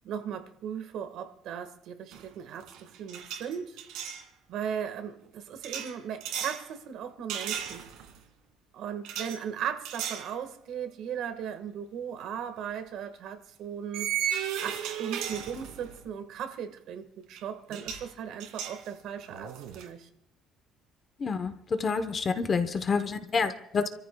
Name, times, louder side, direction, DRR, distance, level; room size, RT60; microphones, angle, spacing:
voice 1, 0.0-3.8 4.5-7.9 8.7-14.2 14.6-20.1, right 8 dB, 65° right, 1.6 m, -37 dB
sound 1, 2.1-2.3 2.6-4.2 5.6-6.6 7.3-8.2 9.0-9.4 9.8-10.3 10.8-10.9 12.4-12.6 13.9-16.0 17.4-17.5 17.7-18.1 18.4-19.9, right 9 dB, 90° right, 2.2 m, -35 dB
voice 2, 21.2-23.9, left 5 dB, 30° left, 0.9 m, -28 dB
29.5 x 14.0 x 2.3 m
cardioid pair, 145°, 0 cm